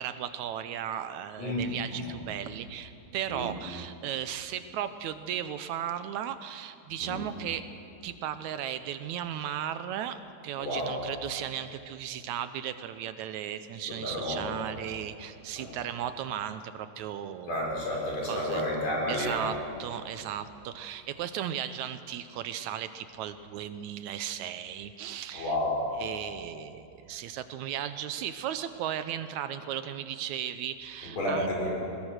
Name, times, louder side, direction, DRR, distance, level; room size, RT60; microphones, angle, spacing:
voice 1, 0.0-7.7 8.0-17.6 18.2-18.6 19.1-25.6 26.0-31.5, right 10 dB, 75° right, 11 dB, 1.8 m, -36 dB
voice 2, 10.6-11.0 13.9-14.4 15.6-15.7 17.5-19.5 25.3-25.8 31.0-31.7, left 1 dB, 55° left, -2 dB, 5.4 m, -31 dB
20.5 x 20.5 x 6.5 m, 2.6 s
omnidirectional pair, 3.7 m